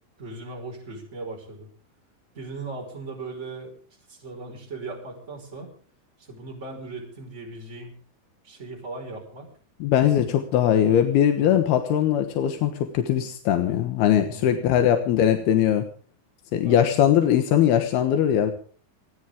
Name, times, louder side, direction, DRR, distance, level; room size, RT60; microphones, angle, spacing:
voice 1, 0.2-1.7 2.3-3.7 4.1-5.7 6.2-7.9 8.4-9.5 11.4-11.6 14.3-14.6 16.6-16.9, right 3 dB, 15° right, 0 dB, 5.3 m, -38 dB
voice 2, 9.8-15.9 16.5-18.5, left 10 dB, 85° left, 6 dB, 3.3 m, -21 dB
30.0 x 11.0 x 3.7 m, 0.42 s
omnidirectional pair, 4.4 m